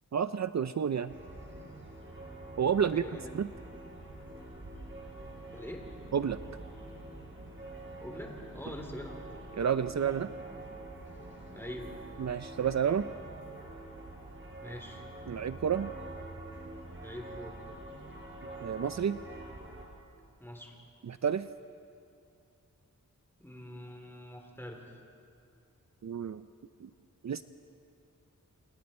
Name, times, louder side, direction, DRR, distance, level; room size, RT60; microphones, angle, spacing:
voice 1, 0.1-1.1 2.6-3.0 3.3-3.5 6.1-6.4 9.6-10.3 12.2-13.1 15.3-15.9 18.6-19.2 21.1-21.5 26.0-26.5 26.8-26.9 27.2-27.4, right 7 dB, 60° right, 12 dB, 0.5 m, -30 dB
sound 1, 1.1-19.8, right 2 dB, 35° right, 5.2 m, -46 dB
voice 2, 2.9-3.3 5.5-6.0 8.0-9.2 11.5-12.0 14.6-15.0 17.0-17.6 20.4-20.7 23.4-25.0, left 1 dB, 5° left, 2 dB, 3.5 m, -44 dB
28.5 x 28.5 x 4.4 m, 2.5 s
wide cardioid pair, 90°, 32 cm